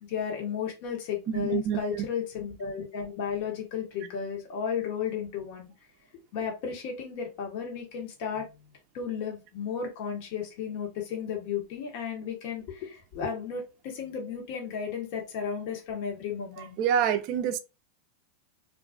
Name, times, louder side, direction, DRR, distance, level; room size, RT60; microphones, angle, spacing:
voice 1, 0.0-5.7 6.3-8.5 8.9-16.7, left 7 dB, 55° left, 0.8 m, -34 dB
voice 2, 1.3-2.1 16.8-17.6, right 9 dB, 50° right, 0.3 m, -27 dB
2.3 x 2.3 x 2.3 m
hypercardioid pair, 110°, 0 cm